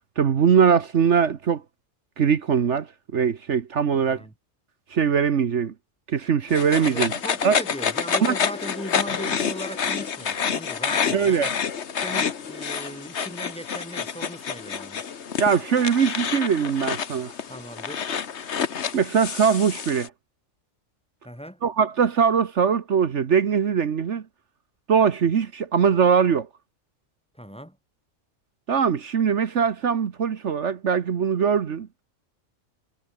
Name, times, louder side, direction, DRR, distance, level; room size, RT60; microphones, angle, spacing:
voice 1, 0.2-1.6 2.2-2.9 3.1-4.2 4.9-5.7 6.1-7.1 7.4-7.6 8.2-8.3 11.1-11.5 15.4-17.3 18.9-20.1 21.6-24.2 24.9-26.5 28.7-31.9, right 7 dB, 65° right, 1.4 m, -21 dB
voice 2, 3.9-4.3 6.8-11.5 12.0-15.0 17.5-18.0 21.2-21.6 27.3-27.8, equal, 5° left, 2.4 m, -38 dB
sound 1, 6.5-20.1, left 7 dB, 60° left, 1.5 m, -28 dB
omnidirectional pair, 1.3 m